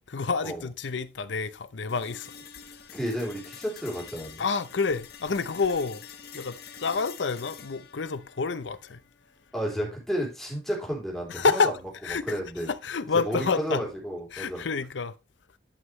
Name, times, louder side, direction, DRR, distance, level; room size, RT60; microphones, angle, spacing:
voice 1, 0.1-2.3 4.4-6.1 6.3-9.0 11.3-11.7 12.0-12.4 12.7-13.8 14.3-15.1, left 4 dB, 85° left, 0.7 m, -28 dB
sound 1, 1.9-9.9, left 7 dB, 60° left, 1.1 m, -47 dB
voice 2, 2.9-4.4 9.5-11.7 12.2-12.7 13.1-14.6, equal, ahead, 3.3 m, -32 dB
10.5 x 5.7 x 3.2 m
head